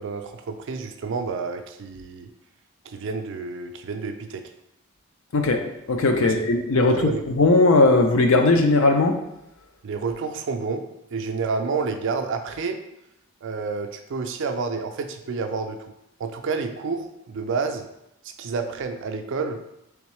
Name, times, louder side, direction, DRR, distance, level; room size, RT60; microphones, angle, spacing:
voice 1, 0.0-2.3 2.8-4.4 6.2-6.3 7.0-7.2 9.8-12.8 13.4-15.8 16.2-17.9 18.4-19.6, right 4 dB, 60° right, 6 dB, 0.4 m, -29 dB
voice 2, 5.3-9.2, left 2 dB, 65° left, 5 dB, 0.5 m, -18 dB
3.5 x 3.5 x 3.1 m, 0.85 s
head